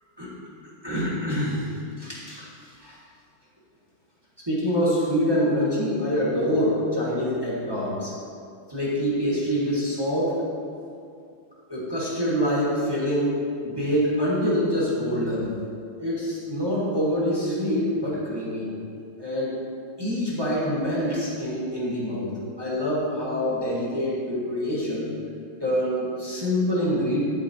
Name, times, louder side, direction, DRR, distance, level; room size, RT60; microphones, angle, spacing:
voice 1, 0.8-1.6 2.0-3.0 4.5-8.1 8.7-10.5 11.7-15.5 16.0-18.7 19.2-19.6 20.0-25.1 25.6-27.3, equal, 15° right, -7 dB, 1.2 m, -25 dB
11.5 x 4.3 x 2.8 m, 2.4 s
omnidirectional pair, 2.3 m